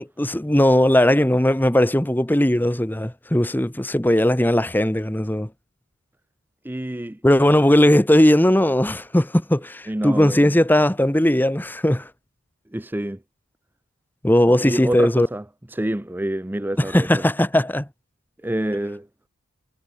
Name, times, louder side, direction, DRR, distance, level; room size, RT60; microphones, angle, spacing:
voice 1, 0.0-5.5 7.2-12.1 14.2-15.3 16.9-17.9, left 1 dB, 10° left, 0.9 m, -18 dB
voice 2, 6.6-7.2 9.9-10.6 12.7-13.2 14.6-17.2 18.4-19.1, right 1 dB, 10° right, 0.5 m, -27 dB
head